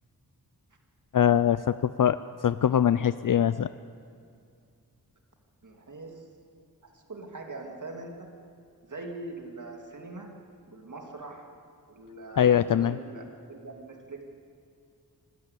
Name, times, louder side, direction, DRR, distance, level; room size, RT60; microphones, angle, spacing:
voice 1, 1.1-2.2 2.4-3.7 12.4-12.9, left 9 dB, 60° left, 15 dB, 0.5 m, -22 dB
voice 2, 5.6-6.2 6.8-8.3 8.8-10.3 10.7-11.5 11.9-13.2 13.5-14.2, right 2 dB, 55° right, 2 dB, 2.5 m, -42 dB
25.0 x 13.0 x 8.3 m, 2.3 s
wide cardioid pair, 90°, 37 cm